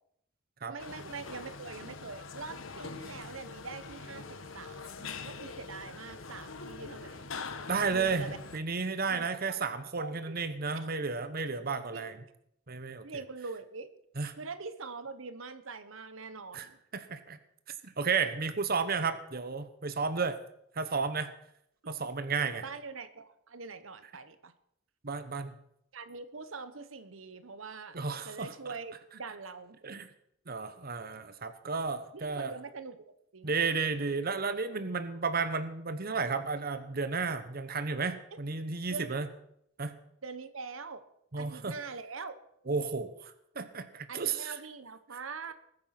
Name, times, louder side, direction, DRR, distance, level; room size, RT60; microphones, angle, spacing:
voice 1, 0.7-7.3 7.9-8.4 9.1-9.6 10.0-10.4 11.9-12.1 13.0-13.9 14.4-16.8 21.8-22.0 22.6-24.5 25.9-28.0 28.2-29.8 32.1-33.5 38.3-38.4 38.9-39.2 40.2-41.0 41.4-42.4 44.1-45.5, right 4 dB, 80° right, 11 dB, 1.2 m, -43 dB
sound 1, 0.8-8.6, left 4 dB, 80° left, 1.4 m, -44 dB
voice 2, 7.7-8.3 8.5-12.2 12.7-13.0 14.2-14.3 16.5-17.4 17.8-20.4 20.7-21.3 21.9-22.6 25.0-25.5 27.9-28.5 29.8-30.1 30.5-32.5 33.4-39.3 39.8-40.0 41.3-41.7 42.7-44.6, right 4 dB, 50° right, 10 dB, 1.1 m, -33 dB
20.5 x 9.4 x 5.9 m, 0.74 s
head